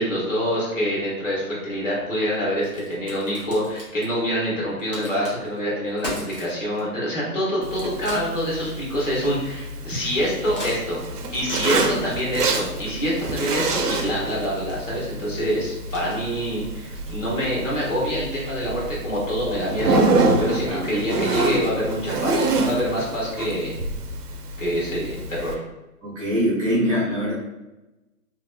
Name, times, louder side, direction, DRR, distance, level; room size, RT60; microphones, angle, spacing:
voice 1, 0.0-11.0 11.3-20.0 20.4-23.7 24.6-25.6, equal, 55° left, -6 dB, 1.3 m, -26 dB
Crack, 1.6-17.7, equal, 35° left, 0.7 m, -43 dB
Zipper (clothing), 7.6-25.5, right 2 dB, 80° right, 0.7 m, -27 dB
voice 2, 11.6-12.1 17.2-17.3 20.6-20.9 26.0-27.3, equal, 20° right, -8 dB, 1.0 m, -24 dB
3.0 x 2.7 x 2.2 m, 1.0 s
hypercardioid pair, 175°, 46 cm